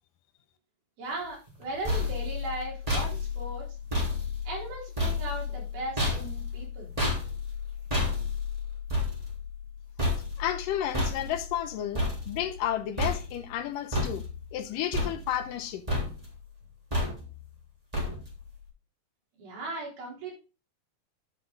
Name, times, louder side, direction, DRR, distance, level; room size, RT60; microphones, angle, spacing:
voice 1, 1.0-3.7 4.5-6.9 19.4-20.3, right 2 dB, 85° right, 5.8 m, -37 dB
sound 1, 1.5-12.7 13.0-13.6 13.9-14.6 14.9-15.6 15.9-16.4 16.9-17.5 17.9-18.5, left 2 dB, 10° right, 3.0 m, -31 dB
voice 2, 10.4-14.2 14.5-15.8, left 11 dB, 80° left, 2.2 m, -32 dB
11.5 x 5.9 x 3.8 m
omnidirectional pair, 4.2 m